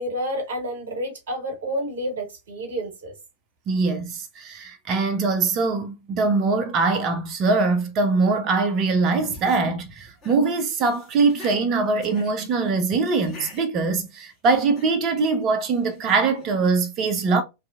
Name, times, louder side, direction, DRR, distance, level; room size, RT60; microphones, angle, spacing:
voice 1, 0.0-3.1, equal, 60° right, 1.1 m, -29 dB
voice 2, 3.7-17.4, right 4 dB, 35° right, 0.5 m, -22 dB
sound 1, 9.1-9.6 10.1-10.4 10.7-11.6 12.0-12.3 13.2-13.6 14.2-14.9 15.8-16.5, left 3 dB, 20° left, 1.3 m, -45 dB
2.6 x 2.3 x 2.3 m
figure-of-eight pair, 90°, 0 cm